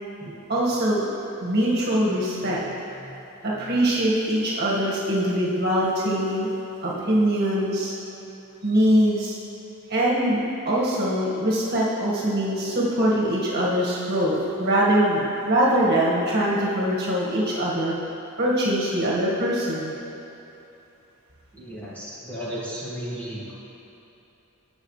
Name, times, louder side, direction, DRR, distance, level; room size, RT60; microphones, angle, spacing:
voice 1, 0.5-1.0 1.4-2.6 3.4-6.5 6.8-7.9 8.6-9.3 9.9-10.4 10.7-17.9 18.4-19.9, right 1 dB, 50° right, -6 dB, 1.9 m, -22 dB
voice 2, 21.5-23.5, equal, 5° left, -9 dB, 2.1 m, -34 dB
17.0 x 6.5 x 3.3 m, 3.0 s
head